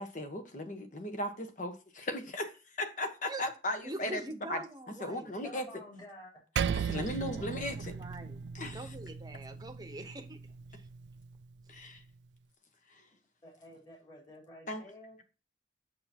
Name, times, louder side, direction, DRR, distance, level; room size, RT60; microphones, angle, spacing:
voice 1, 0.0-4.2 4.5-4.6 5.0-5.6 6.7-7.9 8.5-8.8 11.7-12.0 12.9-13.0 14.7-14.8, left 1 dB, 45° left, 1.2 m, -37 dB
voice 2, 3.8-5.3 6.9-7.5 7.9-8.4 8.7-10.4 10.7-10.9, right 2 dB, 20° right, 1.0 m, -44 dB
voice 3, 5.4-6.3 13.0-13.1 13.4-15.2, left 1 dB, 25° left, 3.8 m, -51 dB
Percussion, 6.6-11.3, right 7 dB, 75° right, 0.4 m, -37 dB
6.8 x 6.6 x 2.9 m
head